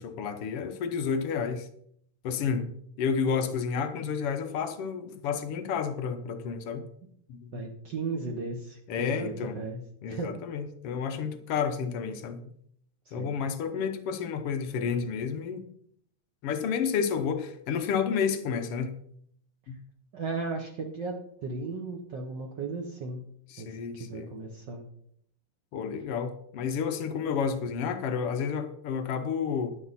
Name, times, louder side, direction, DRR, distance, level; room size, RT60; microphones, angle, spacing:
voice 1, 0.0-1.7 2.2-6.8 7.3-7.6 8.9-9.6 10.0-12.4 13.1-15.7 16.4-19.0 19.7-19.8 23.5-24.3 25.7-29.7, left 6 dB, 75° left, 7 dB, 1.3 m, -30 dB
voice 2, 7.5-9.8 10.1-10.3 13.0-13.4 20.1-21.1 21.4-23.2 23.6-23.7 24.1-24.8, right 4 dB, 70° right, 1 dB, 1.0 m, -35 dB
12.5 x 11.0 x 4.2 m, 0.68 s
omnidirectional pair, 3.9 m